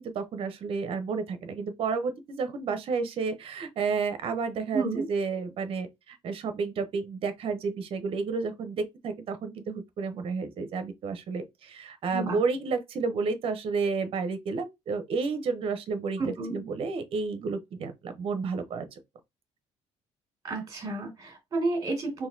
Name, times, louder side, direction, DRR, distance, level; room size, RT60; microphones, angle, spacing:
voice 1, 0.0-18.9, right 4 dB, 55° right, 0.7 m, -31 dB
voice 2, 4.7-5.0 12.1-12.4 16.2-16.6 20.4-22.3, right 3 dB, 30° right, 1.9 m, -31 dB
3.9 x 2.6 x 2.7 m
cardioid pair, 135°, 12 cm